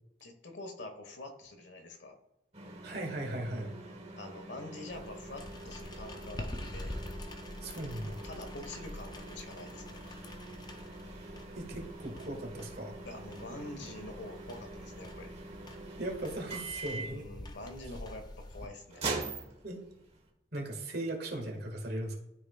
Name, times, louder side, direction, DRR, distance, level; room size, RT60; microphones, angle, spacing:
voice 1, 0.2-2.2 4.2-6.9 8.0-10.0 13.0-15.3 16.9-19.3, left 2 dB, 70° left, 5 dB, 1.3 m, -46 dB
sound 1, 2.5-20.3, right 3 dB, 35° right, 1.2 m, -44 dB
voice 2, 2.8-3.7 7.6-8.2 11.5-12.9 16.0-17.3 19.6-19.8 20.5-22.1, right 1 dB, 55° right, 2 dB, 1.8 m, -38 dB
sound 2, 4.9-18.7, left 1 dB, 20° left, 0.6 m, -46 dB
12.5 x 4.9 x 2.4 m, 0.91 s
head